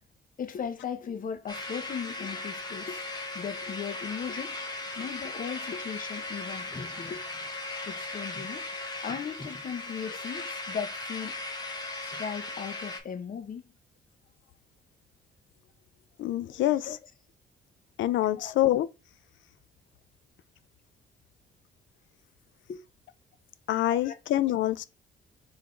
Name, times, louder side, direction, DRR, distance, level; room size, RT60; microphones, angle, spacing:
voice 1, 0.4-3.0 3.3-4.6 5.0-7.2 7.9-8.6 9.0-11.3 12.0-13.6 16.4-17.0 18.2-18.5 22.7-22.8 24.0-24.2, left 7 dB, 45° left, 0.8 m, -37 dB
sound 1, 1.5-13.0, left 2 dB, 20° left, 1.0 m, -37 dB
voice 2, 16.2-16.9 18.0-18.9 23.7-24.8, left 13 dB, 70° left, 0.4 m, -26 dB
3.7 x 3.5 x 3.8 m
cardioid pair, 90°, 20 cm